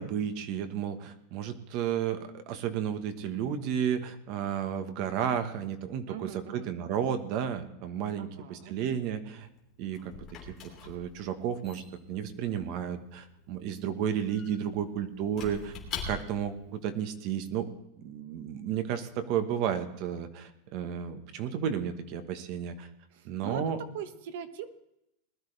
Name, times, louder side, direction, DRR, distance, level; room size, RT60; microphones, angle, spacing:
voice 1, 0.0-9.5 9.8-10.2 10.8-11.8 12.1-15.7 16.0-17.7 18.0-22.9 23.2-23.8, right 8 dB, 35° right, 9 dB, 1.2 m, -32 dB
voice 2, 6.1-6.7 8.2-8.8 23.1-24.7, right 8 dB, 55° right, 9 dB, 1.3 m, -41 dB
Squeak / Wood, 9.4-16.6, left 5 dB, 25° left, 2.9 m, -44 dB
20.5 x 12.0 x 3.4 m, 0.82 s
supercardioid pair, 180°, 0 cm